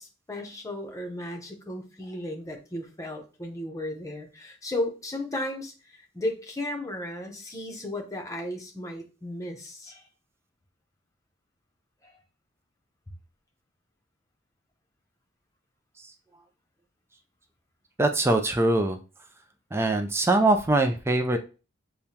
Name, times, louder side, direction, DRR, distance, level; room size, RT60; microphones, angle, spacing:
voice 1, 0.0-10.1 12.0-12.2, left 1 dB, 15° left, 2 dB, 0.8 m, -35 dB
voice 2, 18.0-19.0 19.7-21.4, right 2 dB, 10° right, 5 dB, 0.4 m, -22 dB
6.7 x 2.3 x 2.8 m, 0.34 s
head